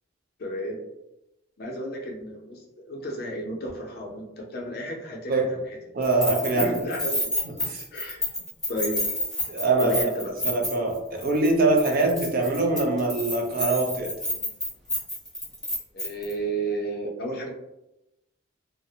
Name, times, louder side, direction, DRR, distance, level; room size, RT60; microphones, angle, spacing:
voice 1, 0.4-0.8 1.6-5.8 6.6-7.3 7.9-9.0 9.8-10.3 15.9-17.5, right 1 dB, 50° left, 0 dB, 0.5 m, -33 dB
voice 2, 5.9-6.7 7.6-7.8 9.5-10.1 10.4-14.1, right 2 dB, 45° right, 1 dB, 0.4 m, -23 dB
Keys jangling, 6.0-11.0 11.2-11.5 11.8-16.3, left 1 dB, ahead, 0.5 m, -29 dB
2.4 x 2.0 x 2.8 m, 0.91 s
head